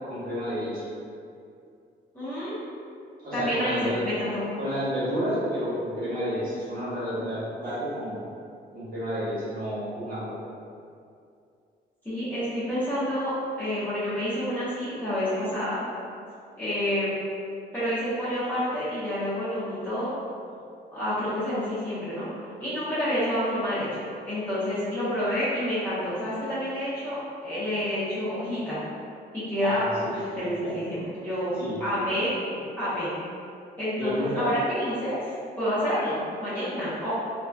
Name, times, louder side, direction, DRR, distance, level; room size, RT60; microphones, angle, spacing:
voice 1, 0.0-0.8 3.2-4.0 4.5-8.2 8.7-10.3 29.6-29.9 30.4-30.7 31.6-31.8 33.9-34.5, equal, 55° right, -10 dB, 1.3 m, -30 dB
voice 2, 2.1-2.5 3.3-4.5 12.0-15.8 16.6-17.1 17.7-20.1 20.9-23.9 24.3-28.8 29.3-32.3 32.8-33.1 33.8-35.2 35.6-37.2, equal, 10° left, -14 dB, 0.8 m, -28 dB
2.9 x 2.4 x 2.3 m, 2.4 s
cardioid pair, 100°, 18 cm